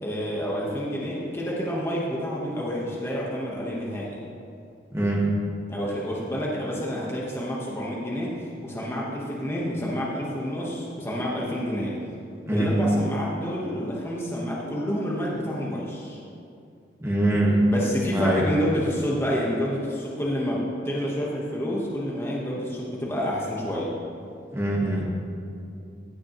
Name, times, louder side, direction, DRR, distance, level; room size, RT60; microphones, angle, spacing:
voice 1, 0.0-4.2 5.7-12.0 12.5-16.2 17.7-24.0, equal, 15° left, -5 dB, 1.2 m, -29 dB
voice 2, 4.9-5.2 12.5-12.7 17.0-17.7 18.1-18.4 24.5-25.1, right 1 dB, 15° right, -3 dB, 1.5 m, -23 dB
15.5 x 8.3 x 3.1 m, 2.5 s
head